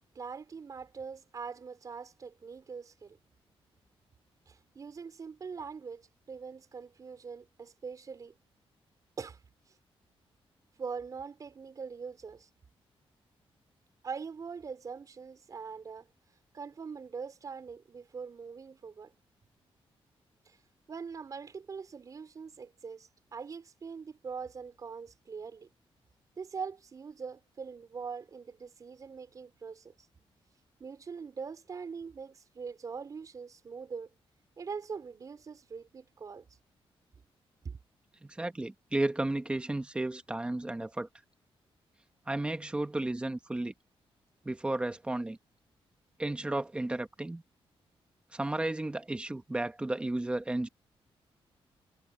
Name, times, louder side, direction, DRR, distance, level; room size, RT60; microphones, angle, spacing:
voice 1, 0.1-3.2 4.5-8.3 9.2-9.4 10.8-12.5 14.0-16.1 16.5-19.1 20.4-20.6 20.9-25.7 26.4-29.9 30.8-34.1 34.6-36.5 37.6-37.8, right 5 dB, 35° right, 5.0 m, -42 dB
voice 2, 38.2-41.1 42.3-43.7 44.4-45.4 46.2-47.4 48.3-50.7, right 2 dB, 10° right, 1.4 m, -33 dB
wide cardioid pair, 180°, 10 cm